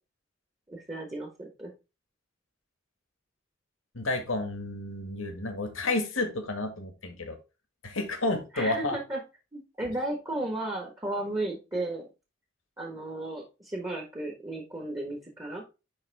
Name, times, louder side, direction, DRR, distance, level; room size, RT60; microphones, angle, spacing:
voice 1, 0.7-1.7 8.5-9.2 9.5-12.1 12.8-15.6, right 2 dB, 20° right, 1 dB, 1.4 m, -34 dB
voice 2, 3.9-7.4 7.8-9.0, left 2 dB, 85° left, 5 dB, 1.8 m, -31 dB
10.5 x 3.7 x 3.5 m, 0.28 s
head